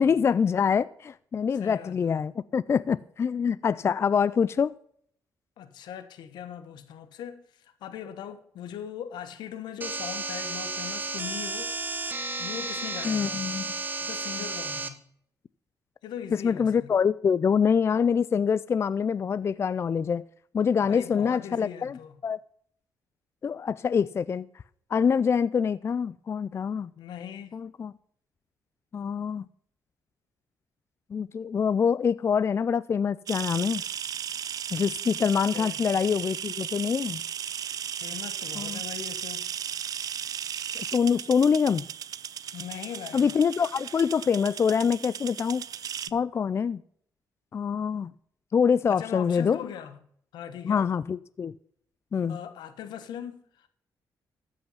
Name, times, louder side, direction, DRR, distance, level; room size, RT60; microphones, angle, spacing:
voice 1, 0.0-4.7 13.0-13.7 16.3-20.2 20.5-22.4 23.4-24.5 24.9-26.9 27.5-27.9 28.9-29.5 31.1-33.8 34.7-37.2 38.6-38.8 40.8-41.9 43.1-45.6 46.1-46.8 47.5-48.1 48.5-49.6 50.6-51.5 52.1-52.4, left 6 dB, 35° left, 0.3 m, -25 dB
voice 2, 1.5-2.3 5.6-11.7 12.4-13.4 14.0-15.0 16.0-16.9 20.8-22.2 27.0-27.5 35.5-35.8 38.0-39.5 42.5-43.3 48.9-50.0 50.3-50.9 52.3-53.7, left 9 dB, 85° left, 1.2 m, -40 dB
sound 1, 9.8-14.9, right 3 dB, 25° right, 1.3 m, -33 dB
sound 2, 33.3-46.1, right 9 dB, 55° right, 0.4 m, -36 dB
13.5 x 5.6 x 5.6 m
cardioid pair, 95°, 7 cm